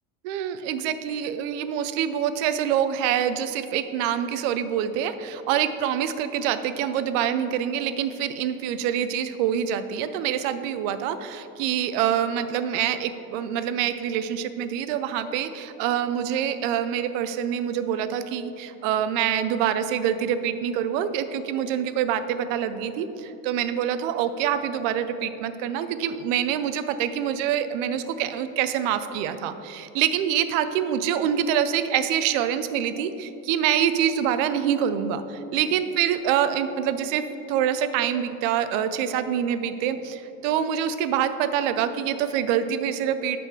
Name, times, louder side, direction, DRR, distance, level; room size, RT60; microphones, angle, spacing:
voice 1, 0.2-37.2 37.5-43.4, right 9 dB, 85° right, 11 dB, 0.6 m, -26 dB
11.0 x 4.3 x 4.6 m, 2.9 s
cardioid pair, 150°, 38 cm